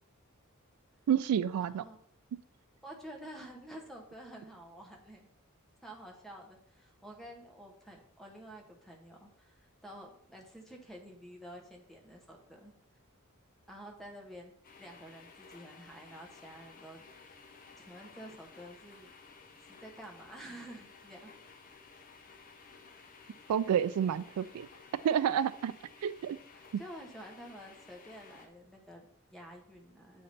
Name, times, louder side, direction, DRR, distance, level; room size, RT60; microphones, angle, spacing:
voice 1, 1.1-1.8 23.5-24.7 25.0-25.7 26.0-26.4, right 9 dB, 85° right, 16 dB, 0.3 m, -29 dB
voice 2, 2.8-5.3 5.8-12.7 13.7-17.4 17.8-19.1 19.7-21.3 26.5-30.2, equal, ahead, 1 dB, 1.0 m, -50 dB
sound 1, 14.6-28.5, left 5 dB, 40° left, 0.8 m, -56 dB
7.7 x 3.2 x 4.1 m, 0.64 s
head